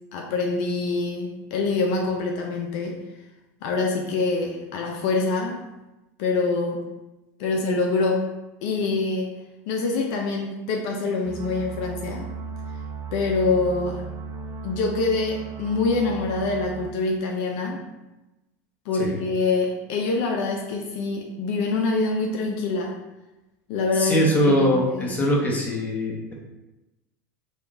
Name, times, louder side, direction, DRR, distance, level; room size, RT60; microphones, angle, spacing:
voice 1, 0.1-3.0 3.6-5.7 6.2-6.9 7.4-8.3 8.6-9.4 9.7-12.3 13.1-14.1 14.6-17.9 18.9-23.0 23.7-25.1, left 3 dB, 65° left, 1 dB, 0.5 m, -25 dB
sound 1, 11.3-16.9, right 4 dB, 35° right, 0.4 m, -36 dB
voice 2, 23.9-26.3, equal, 15° left, -3 dB, 1.0 m, -22 dB
3.5 x 2.4 x 3.7 m, 1.0 s
supercardioid pair, 105°, 9 cm